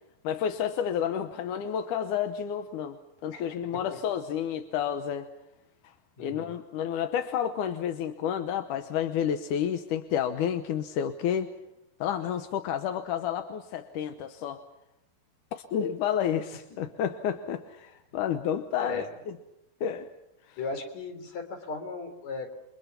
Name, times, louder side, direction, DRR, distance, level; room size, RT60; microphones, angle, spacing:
voice 1, 0.2-5.3 6.2-11.5 12.0-14.6 15.5-19.3 19.8-20.1 20.5-20.6, left 9 dB, 70° left, 8 dB, 2.3 m, -30 dB
voice 2, 6.2-6.6 18.8-19.2 20.6-22.5, left 3 dB, 50° left, 7 dB, 4.5 m, -37 dB
29.5 x 24.5 x 5.9 m, 0.89 s
omnidirectional pair, 4.4 m